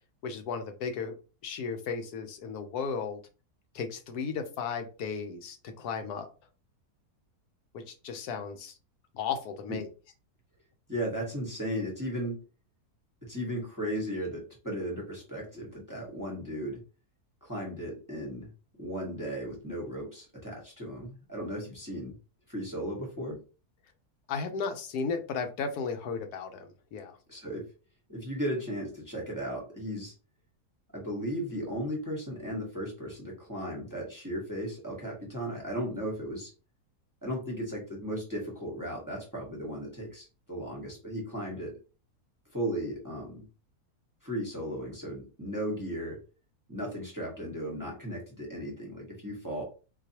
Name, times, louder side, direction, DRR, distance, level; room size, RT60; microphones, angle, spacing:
voice 1, 0.2-1.2 1.4-3.2 3.7-6.3 7.7-8.8 9.1-9.9 24.3-27.2, left 5 dB, 75° left, 7 dB, 1.2 m, -35 dB
voice 2, 10.9-12.4 13.2-16.8 17.4-18.5 18.8-22.1 22.5-23.4 27.3-27.7 28.1-30.1 30.9-36.5 37.2-41.7 42.5-43.4 44.2-46.2 46.7-49.6, equal, 15° right, -2 dB, 0.9 m, -36 dB
3.9 x 2.7 x 2.8 m, 0.34 s
omnidirectional pair, 1.7 m